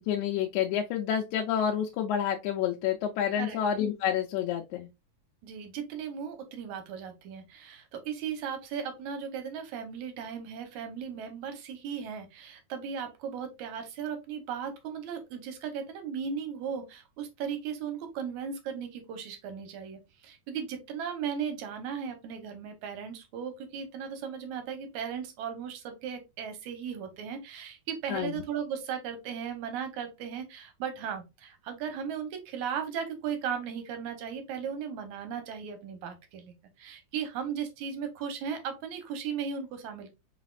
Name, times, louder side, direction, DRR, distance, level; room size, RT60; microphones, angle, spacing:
voice 1, 0.1-4.9 28.1-28.3, left 9 dB, 90° left, 2.0 m, -29 dB
voice 2, 5.4-40.1, right 7 dB, 80° right, 2.2 m, -36 dB
4.9 x 4.0 x 2.3 m
omnidirectional pair, 3.4 m